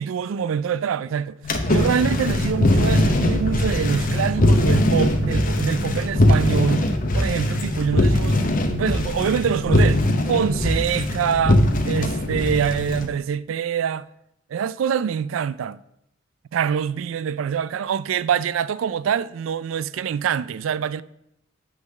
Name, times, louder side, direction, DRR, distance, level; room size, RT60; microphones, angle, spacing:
voice 1, 0.0-1.3 1.7-6.8 7.1-14.1 14.5-15.8 16.5-21.0, right 7 dB, 80° right, 0.3 m, -25 dB
sound 1, 1.4-13.1, left 1 dB, 45° left, 0.8 m, -21 dB
9.0 x 3.9 x 6.4 m
head